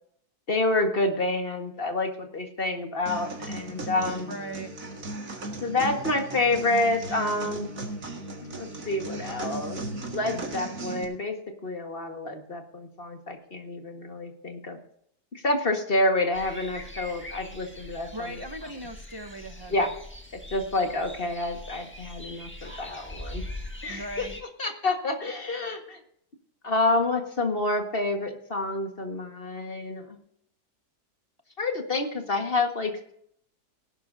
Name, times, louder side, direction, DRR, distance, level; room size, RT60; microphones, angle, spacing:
voice 1, 0.5-4.3 5.6-7.7 8.4-9.8 10.1-11.4 11.6-14.8 15.3-18.4 19.7-19.9 20.3-23.4 23.8-24.3 24.6-26.0 26.6-30.2 31.6-32.9, left 2 dB, 35° left, 4 dB, 1.9 m, -28 dB
sound 1, 3.1-11.0, right 2 dB, 55° right, 2.4 m, -36 dB
voice 2, 4.3-4.8 18.1-19.9 23.9-24.4, right 1 dB, 30° right, 5 dB, 0.5 m, -38 dB
sound 2, 16.3-24.4, left 1 dB, 5° left, 1.4 m, -41 dB
18.0 x 11.5 x 2.8 m, 0.68 s
omnidirectional pair, 1.7 m